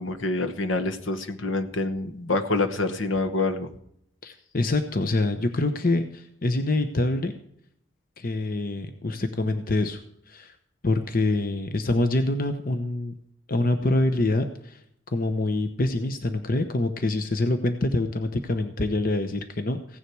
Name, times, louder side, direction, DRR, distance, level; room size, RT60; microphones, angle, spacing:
voice 1, 0.0-3.7, left 2 dB, 70° left, 9 dB, 1.2 m, -26 dB
voice 2, 4.2-7.3 8.2-10.0 10.3-10.5 10.8-13.1 13.5-14.8 15.1-20.0, left 2 dB, 45° left, 8 dB, 0.9 m, -25 dB
16.0 x 9.9 x 4.7 m, 0.70 s
head